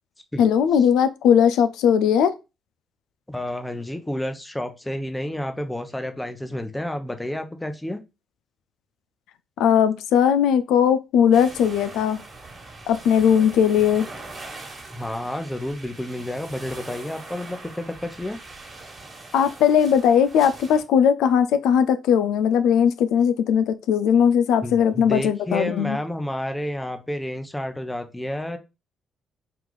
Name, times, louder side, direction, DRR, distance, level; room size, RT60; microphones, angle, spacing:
voice 1, 0.4-2.3 9.6-12.2 12.9-14.1 19.3-26.0, left 8 dB, 90° left, 0.3 m, -19 dB
voice 2, 3.3-8.0 14.9-18.4 24.6-28.6, left 1 dB, 10° left, 0.7 m, -30 dB
sound 1, 11.3-20.8, right 2 dB, 40° right, 1.6 m, -41 dB
4.7 x 2.4 x 3.8 m
cardioid pair, 90°, 0 cm